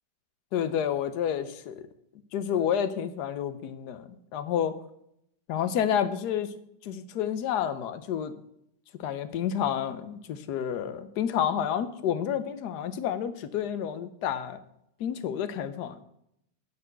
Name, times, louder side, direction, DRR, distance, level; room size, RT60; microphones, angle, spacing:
voice 1, 0.5-1.9 2.3-4.8 5.5-6.5 6.8-8.3 9.0-14.6 15.0-16.0, left 9 dB, 65° left, 11 dB, 1.3 m, -29 dB
12.0 x 4.2 x 8.1 m, 0.76 s
omnidirectional pair, 2.0 m